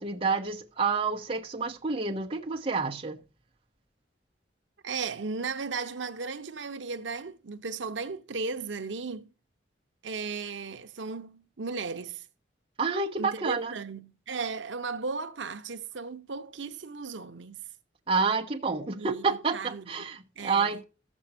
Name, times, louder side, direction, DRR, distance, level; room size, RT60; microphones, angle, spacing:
voice 1, 0.0-3.2 12.8-13.7 18.1-20.8, right 4 dB, 30° right, 1.1 m, -29 dB
voice 2, 4.8-9.3 10.0-12.3 13.2-17.7 18.9-20.1 20.4-20.8, right 4 dB, 85° right, 0.9 m, -36 dB
14.5 x 7.3 x 4.3 m
head